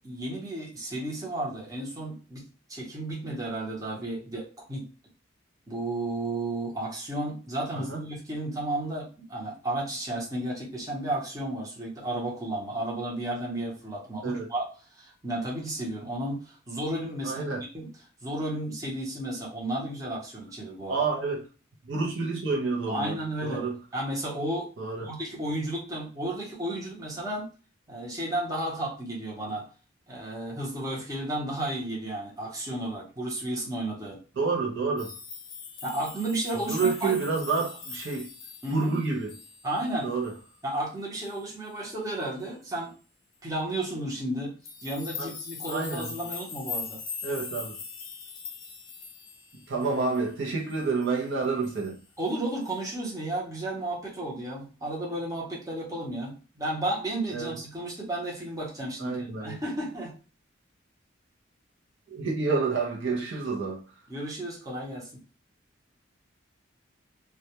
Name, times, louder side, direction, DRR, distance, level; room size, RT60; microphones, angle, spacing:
voice 1, 0.0-4.9 5.7-14.7 14.9-17.4 17.7-17.9 18.2-21.0 22.9-23.7 23.9-24.7 25.0-27.5 27.9-29.6 30.1-34.2 35.8-37.1 38.6-39.0 39.6-40.1 40.6-42.9 43.4-44.5 44.8-47.0 52.2-60.1 64.1-65.1, right 1 dB, 15° right, 0.7 m, -33 dB
voice 2, 17.2-17.6 20.9-21.5 21.8-23.8 24.8-25.1 34.3-35.1 36.5-38.3 38.7-39.4 40.0-40.3 45.2-45.3 45.7-46.1 47.2-47.8 49.7-52.0 57.3-57.6 59.0-59.6 62.1-63.8, right 4 dB, 65° right, 0.6 m, -29 dB
sound 1, 35.0-40.0 40.2-40.6 41.2-41.5 44.7-50.3 50.7-51.2 51.6-52.0 52.6-52.8, left 5 dB, 45° left, 0.7 m, -41 dB
2.2 x 2.2 x 2.8 m
head